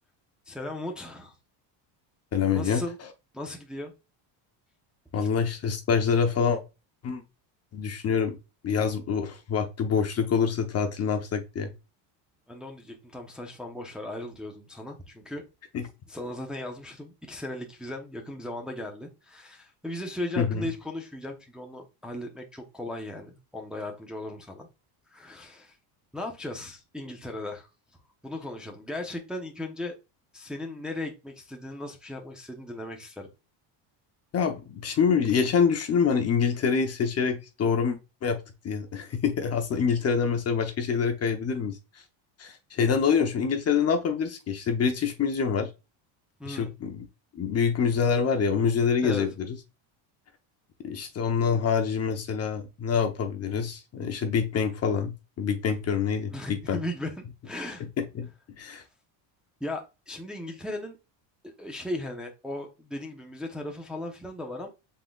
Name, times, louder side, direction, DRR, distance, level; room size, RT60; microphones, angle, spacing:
voice 1, 0.5-1.3 2.5-3.0 3.3-3.9 5.1-5.3 12.5-15.4 16.1-24.7 25.1-25.8 26.1-27.7 28.2-30.0 30.3-33.3 46.4-46.7 49.0-49.3 56.3-57.1 57.4-57.8 59.6-61.0 61.4-64.7, left 1 dB, ahead, 0.7 m, -37 dB
voice 2, 2.3-2.8 5.1-6.6 7.0-7.2 7.7-8.4 8.6-11.7 15.7-15.9 20.4-20.7 34.3-38.4 38.6-41.8 42.4-45.7 46.5-47.0 47.3-49.5 50.8-56.8 58.0-58.3 58.6-58.8, left 6 dB, 30° left, 0.7 m, -26 dB
5.4 x 3.9 x 2.3 m
cardioid pair, 140°, 49 cm